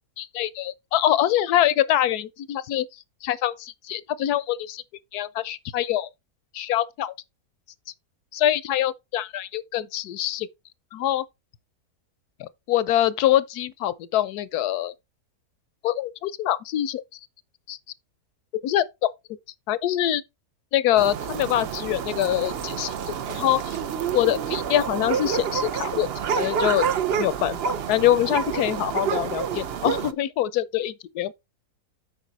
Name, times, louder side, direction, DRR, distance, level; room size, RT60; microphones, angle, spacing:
voice 1, 0.2-2.9 3.2-4.8 5.1-6.1 6.5-7.1 8.3-10.5 10.9-11.2 12.4-14.9 15.8-17.0 17.7-17.8 18.6-19.1 19.7-20.2 20.7-23.8 24.1-26.1 26.4-26.8 27.2-27.6 27.9-31.3, left 12 dB, 80° left, 1.2 m, -24 dB
sound 1, 21.0-30.1, right 7 dB, 55° right, 0.7 m, -28 dB
8.2 x 5.5 x 4.1 m
omnidirectional pair, 1.7 m